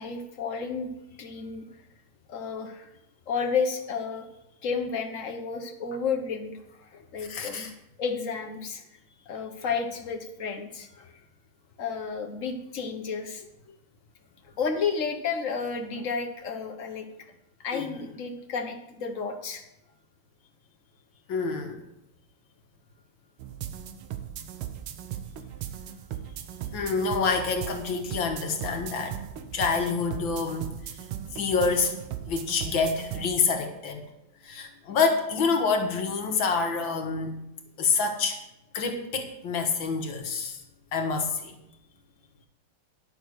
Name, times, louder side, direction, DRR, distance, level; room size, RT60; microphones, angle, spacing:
voice 1, 0.0-1.7 2.3-2.9 3.3-4.3 4.6-6.6 6.9-7.7 8.0-8.8 9.3-11.1 11.8-13.8 14.4-17.1 17.6-19.6, left 5 dB, 45° left, 4 dB, 1.2 m, -32 dB
voice 2, 7.2-7.7 17.7-17.9 21.3-21.8 26.7-29.2 29.5-30.8 31.3-32.0 32.3-34.0 34.4-37.4 37.8-38.4 38.7-40.6 40.9-41.6, left 4 dB, 65° left, 4 dB, 2.0 m, -27 dB
sound 1, 23.4-33.3, right 10 dB, 80° right, 1.7 m, -38 dB
10.5 x 6.4 x 6.3 m, 0.85 s
omnidirectional pair, 2.4 m